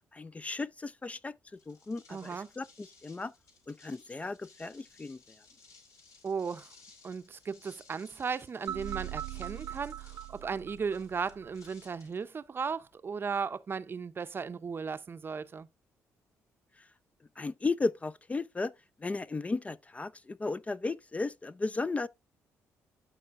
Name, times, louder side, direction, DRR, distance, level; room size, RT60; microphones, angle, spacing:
voice 1, 0.1-1.3 1.7-3.3 3.7-5.2 17.4-18.7 19.0-22.1, left 3 dB, 25° left, 0.4 m, -35 dB
sound 1, 1.5-13.0, left 4 dB, 70° left, 2.4 m, -60 dB
voice 2, 2.1-2.5 6.2-6.7 7.0-15.7, right 5 dB, 40° right, 0.6 m, -36 dB
sound 2, 8.7-11.7, right 12 dB, 80° right, 0.8 m, -41 dB
13.0 x 4.4 x 2.5 m
supercardioid pair, 65°, 6 cm